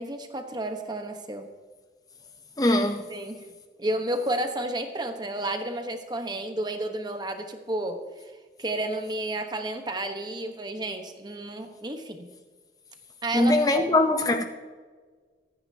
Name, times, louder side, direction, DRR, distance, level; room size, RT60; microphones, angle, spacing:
voice 1, 0.0-1.5 3.1-3.4 3.8-8.3 8.6-12.3 13.2-13.9, right 1 dB, 25° right, 1.1 m, -31 dB
voice 2, 2.6-3.1 13.3-14.4, left 1 dB, 20° left, 0.7 m, -22 dB
25.0 x 9.7 x 2.8 m
head